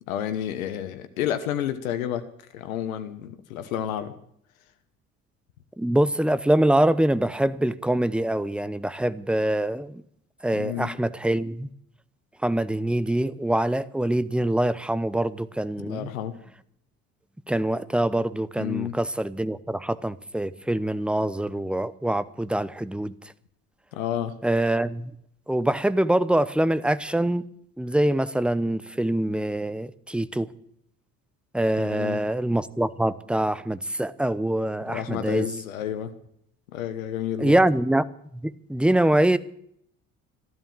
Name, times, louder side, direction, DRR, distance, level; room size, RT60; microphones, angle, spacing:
voice 1, 0.1-2.2 2.5-4.1 10.5-10.9 15.8-16.3 18.6-18.9 23.9-24.3 31.8-32.2 34.9-36.1 36.7-37.6, left 10 dB, 80° left, 10 dB, 1.2 m, -30 dB
voice 2, 5.8-10.0 10.4-11.7 12.4-16.1 17.5-23.1 24.4-25.1 25.5-27.5 27.8-30.5 31.5-35.5 37.4-38.0 38.4-39.4, right 1 dB, 5° right, 16 dB, 0.8 m, -24 dB
14.0 x 12.5 x 7.6 m, 0.70 s
hypercardioid pair, 55°, 41 cm